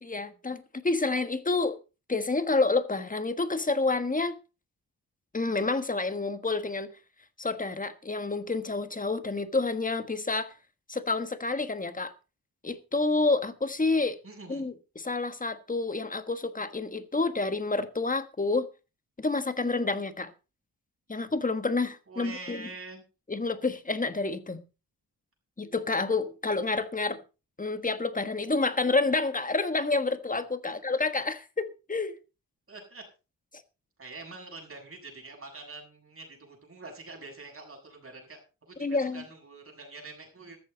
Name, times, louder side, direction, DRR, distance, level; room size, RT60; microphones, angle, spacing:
voice 1, 0.0-1.8 2.1-4.4 5.3-6.9 7.4-10.5 10.9-12.1 12.6-14.2 14.5-18.7 19.2-20.3 21.1-22.6 23.3-24.6 25.6-27.2 27.6-32.1 38.8-39.2, left 3 dB, 20° left, 1.5 m, -29 dB
voice 2, 14.2-14.7 22.1-23.0 30.7-30.8 32.7-33.0 34.0-38.4 38.7-40.6, right 3 dB, 35° right, 7.2 m, -45 dB
14.0 x 13.5 x 4.0 m
wide cardioid pair, 115°, 36 cm